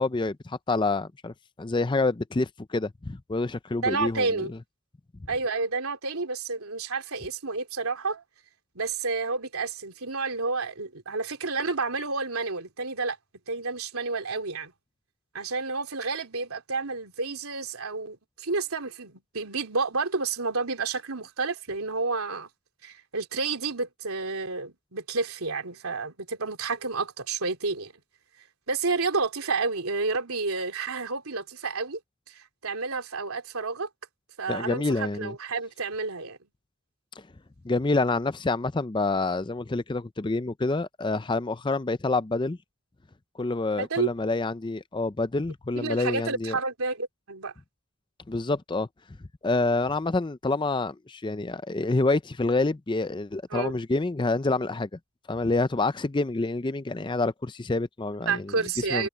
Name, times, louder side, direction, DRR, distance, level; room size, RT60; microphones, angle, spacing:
voice 1, 0.0-4.6 34.5-35.3 37.6-42.6 43.4-46.6 48.3-48.9 49.4-54.9 55.3-58.5 58.9-59.1, left 3 dB, 20° left, 0.5 m, -27 dB
voice 2, 3.8-4.5 5.3-8.2 8.7-13.2 13.5-14.7 15.3-22.5 22.8-27.9 28.7-32.0 32.3-33.9 34.4-36.4 43.8-44.1 45.7-47.5 53.5-53.8 58.2-59.1, right 4 dB, 85° right, 3.2 m, -30 dB
head